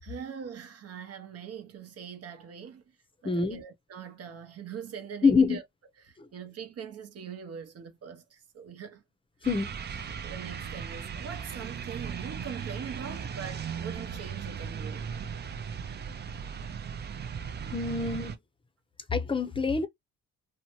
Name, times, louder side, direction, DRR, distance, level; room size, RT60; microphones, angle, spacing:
voice 1, 0.0-3.0 3.2-5.6 6.0-9.0 10.2-15.1 17.5-17.6, right 7 dB, 55° right, 0.8 m, -42 dB
voice 2, 3.2-3.6 5.2-5.6 6.2-6.3 9.4-10.0 17.7-18.4 19.1-19.9, left 4 dB, 15° left, 0.6 m, -26 dB
sound 1, 9.4-18.4, right 7 dB, 35° right, 0.5 m, -37 dB
2.7 x 2.1 x 3.0 m
cardioid pair, 90°, 30 cm